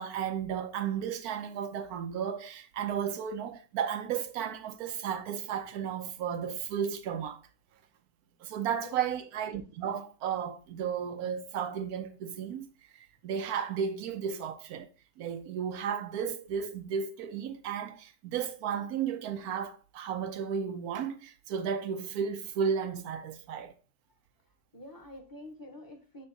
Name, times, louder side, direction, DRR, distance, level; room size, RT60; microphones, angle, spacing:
voice 1, 0.0-7.4 8.4-12.7 12.9-14.9 15.2-23.7, right 7 dB, 80° right, 1.2 m, -34 dB
voice 2, 8.4-9.0 24.7-26.3, left 1 dB, 15° left, 1.0 m, -48 dB
6.7 x 3.6 x 4.0 m
omnidirectional pair, 1.6 m